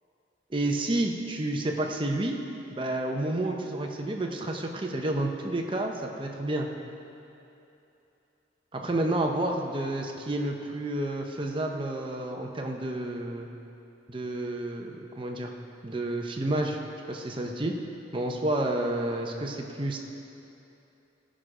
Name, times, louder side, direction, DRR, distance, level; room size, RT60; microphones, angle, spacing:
voice 1, 0.5-2.4 2.7-6.7 8.7-13.5 14.1-15.5 15.8-16.8 17.1-17.8 18.1-20.0, right 1 dB, 25° right, 2 dB, 0.7 m, -30 dB
17.5 x 6.2 x 5.0 m, 2.9 s
head